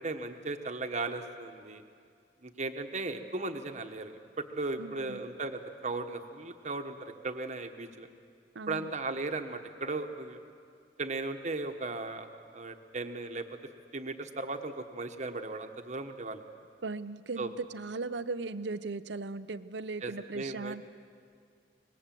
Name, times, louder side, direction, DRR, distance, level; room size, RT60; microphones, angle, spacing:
voice 1, 0.0-1.8 2.4-8.1 8.7-10.4 11.0-13.5 13.9-16.4 17.4-17.5 20.0-20.8, right 3 dB, 40° right, 6 dB, 1.3 m, -37 dB
voice 2, 4.8-5.2 8.5-8.9 16.8-20.8, right 3 dB, 75° right, 13 dB, 0.7 m, -38 dB
25.0 x 20.0 x 7.7 m, 2.2 s
head